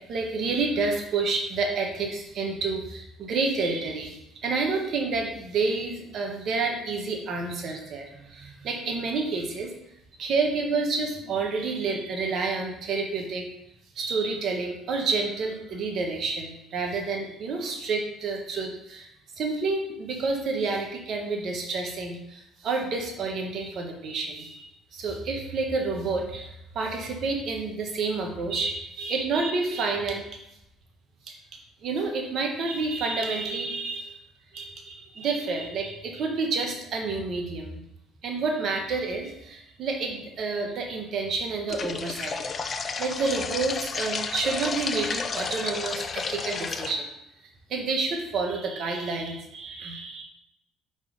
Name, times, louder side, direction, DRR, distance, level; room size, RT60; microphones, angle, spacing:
voice 1, 0.1-9.7 10.2-13.5 13.9-19.1 19.4-24.6 24.9-30.2 31.3-31.4 31.8-34.2 34.5-37.8 38.2-42.3 43.0-47.1 47.7-50.2, right 3 dB, 60° right, 2 dB, 1.4 m, -29 dB
sound 1, 41.7-46.9, left 5 dB, 40° left, 0.6 m, -32 dB
5.2 x 4.2 x 5.0 m, 0.84 s
supercardioid pair, 75°, 0 cm